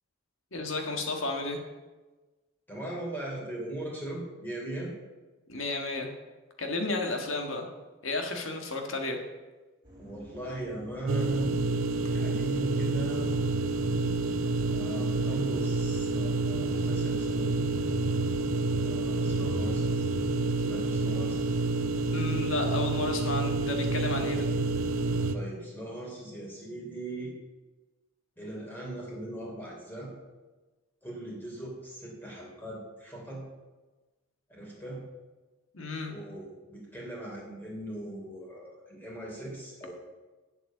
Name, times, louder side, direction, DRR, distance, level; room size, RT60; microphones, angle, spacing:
voice 1, 0.5-1.6 5.5-6.1 6.6-7.7 8.0-9.2 22.1-24.5 35.7-36.1, left 2 dB, 70° left, 3 dB, 1.7 m, -32 dB
voice 2, 2.7-4.9 10.0-11.6 12.0-13.3 14.7-17.6 18.7-20.1 20.5-21.5 25.3-27.3 28.4-30.1 31.0-33.4 34.5-35.0 36.1-39.9, right 1 dB, 10° left, -4 dB, 3.2 m, -39 dB
sound 1, 9.8-24.3, right 1 dB, 20° right, 3.2 m, -50 dB
sound 2, 11.1-25.3, right 2 dB, 85° right, 0.7 m, -28 dB
8.2 x 7.7 x 7.3 m, 1.2 s
head